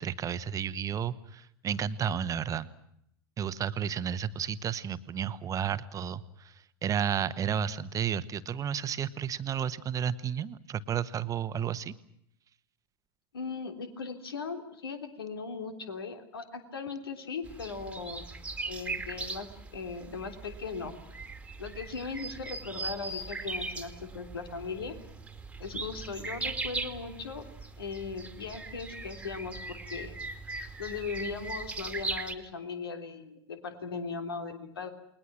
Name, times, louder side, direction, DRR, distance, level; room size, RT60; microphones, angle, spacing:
voice 1, 0.0-2.7 3.4-11.9, right 8 dB, 25° right, 14 dB, 1.3 m, -32 dB
voice 2, 13.3-18.2 18.7-19.5 19.7-20.9 21.6-25.0 25.6-27.4 27.8-30.2 30.8-34.9, left 5 dB, 70° left, 6 dB, 3.4 m, -38 dB
sound 1, 17.4-32.3, right 3 dB, 10° right, 2.2 m, -39 dB
29.5 x 21.5 x 6.1 m, 0.73 s
figure-of-eight pair, 85°, 13 cm